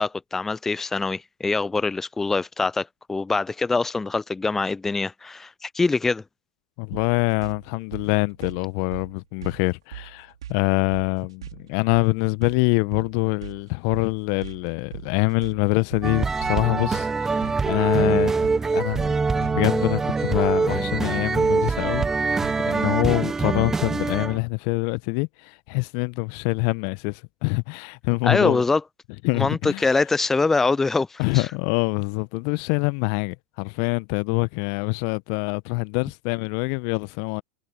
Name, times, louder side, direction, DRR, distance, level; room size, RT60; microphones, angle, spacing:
voice 1, 0.0-6.2 28.2-28.8 29.3-31.5, left 3 dB, 10° left, 0.6 m, -24 dB
voice 2, 6.8-28.6 29.2-29.9 31.2-37.4, left 35 dB, 50° left, 1.2 m, -25 dB
sound 1, 6.9-22.8, right 11 dB, 70° right, 4.8 m, -41 dB
sound 2, 16.0-24.4, right 4 dB, 15° right, 1.2 m, -24 dB
figure-of-eight pair, 85°, 3 cm